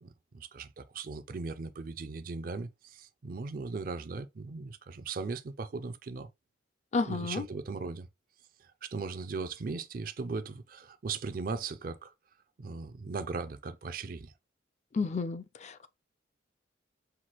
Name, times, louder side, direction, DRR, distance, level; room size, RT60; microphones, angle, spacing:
voice 1, 0.0-6.3 7.0-8.1 8.6-12.1 12.6-14.3, right 4 dB, 50° right, 0.4 m, -38 dB
voice 2, 6.9-7.4 14.9-15.9, left 4 dB, 35° left, 0.4 m, -31 dB
5.8 x 2.4 x 3.0 m
head